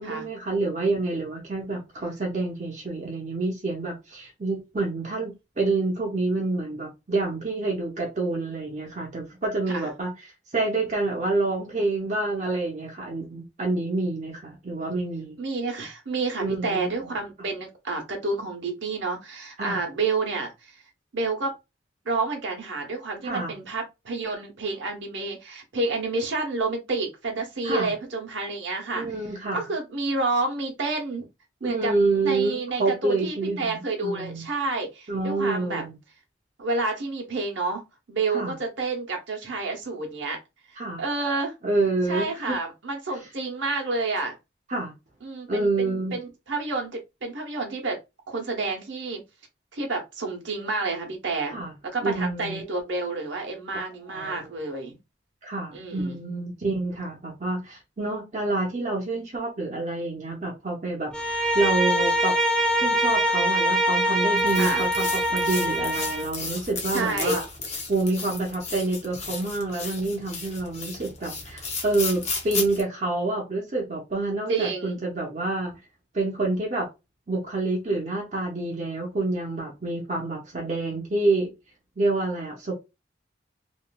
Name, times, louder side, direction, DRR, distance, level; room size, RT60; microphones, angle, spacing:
voice 1, 0.0-10.1 10.5-15.4 16.4-16.9 19.6-19.8 23.2-23.5 27.6-27.9 28.9-29.6 31.6-34.5 35.1-36.0 38.3-38.5 40.8-41.0 41.6-42.6 44.7-44.9 45.5-46.2 51.5-51.7 52.0-52.6 54.1-54.5 55.4-62.3 62.8-67.4 67.9-75.7 76.1-76.9 77.3-81.5 82.0-82.7, right 2 dB, 40° right, 0.7 m, -28 dB
voice 2, 15.4-20.8 21.1-21.6 22.0-29.1 29.5-31.3 31.6-31.9 32.2-35.8 36.6-37.8 38.1-40.4 41.0-41.5 42.1-44.4 45.2-48.0 48.3-49.2 49.7-51.6 51.9-55.0 55.7-56.2 64.6-64.9 66.9-67.4 74.5-75.0, right 3 dB, 85° right, 0.9 m, -29 dB
Bowed string instrument, 61.1-66.3, equal, 5° left, 0.3 m, -23 dB
sound 1, 64.4-72.8, left 4 dB, 35° left, 0.7 m, -34 dB
3.0 x 2.5 x 2.2 m
head